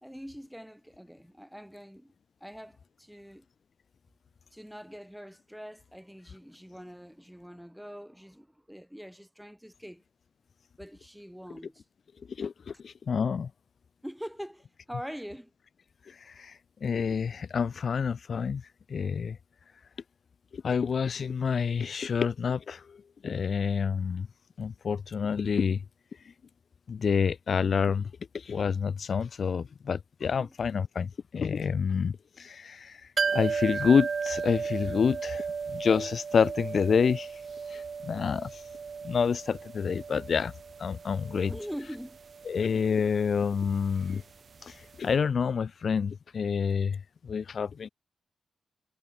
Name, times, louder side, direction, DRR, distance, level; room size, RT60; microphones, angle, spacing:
voice 1, 0.0-2.1 2.4-3.4 4.5-10.0 10.8-11.8 14.0-15.5 30.4-30.5 41.5-42.2, equal, ahead, 1.4 m, -43 dB
voice 2, 12.4-13.5 16.1-18.6 18.9-19.4 20.5-23.0 23.2-24.3 24.6-25.8 26.9-28.1 28.3-33.0 33.3-35.5 35.7-37.4 37.7-38.6 39.0-40.5 40.8-41.5 42.5-44.2 44.6-47.9, left 6 dB, 60° left, 0.4 m, -28 dB
sound 1, 33.2-44.8 45.0-45.1, right 5 dB, 55° right, 0.8 m, -35 dB
cardioid pair, 75°, 0 cm